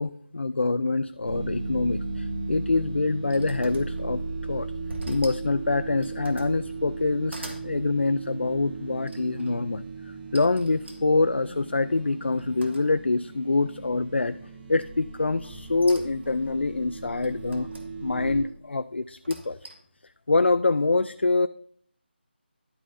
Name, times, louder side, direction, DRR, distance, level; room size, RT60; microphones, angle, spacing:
voice 1, 0.0-4.7 5.1-14.4 14.7-17.7 18.0-19.7 20.0-21.5, left 3 dB, 80° left, 13 dB, 0.4 m, -25 dB
sound 1, 1.2-18.4, right 3 dB, 50° right, 4.0 m, -36 dB
sound 2, 2.5-4.3 4.9-5.5 5.9-6.6 7.0-7.7 9.1-9.5 10.3-13.2 13.6-14.1 15.4-16.4 17.2-17.9 19.0-20.0, right 1 dB, 80° right, 1.7 m, -45 dB
11.5 x 8.9 x 2.6 m, 0.64 s
figure-of-eight pair, 160°, 6 cm